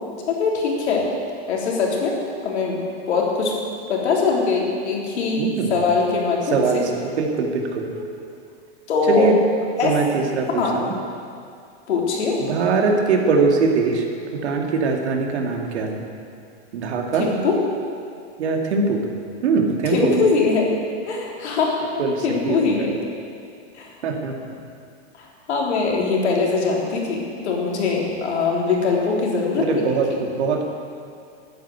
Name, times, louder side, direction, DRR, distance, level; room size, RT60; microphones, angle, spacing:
voice 1, 0.3-1.1 1.5-2.2 2.4-2.8 3.1-3.5 3.9-6.8 7.9-8.0 8.9-9.3 9.8-9.9 10.5-10.8 11.9-12.4 17.1-17.6 19.8-20.7 21.0-21.8 22.2-22.9 23.7-23.9 25.2-30.2, left 4 dB, 90° left, -2 dB, 3.8 m, -22 dB
voice 2, 5.4-5.8 6.5-6.9 7.2-7.9 9.1-9.4 9.8-11.0 12.5-14.1 14.3-16.1 16.7-17.3 18.4-19.0 19.4-20.2 22.0-22.9 24.0-24.4 29.6-30.6, right 4 dB, 80° right, 2 dB, 2.4 m, -22 dB
13.0 x 9.5 x 8.2 m, 2.4 s
supercardioid pair, 170°, 33 cm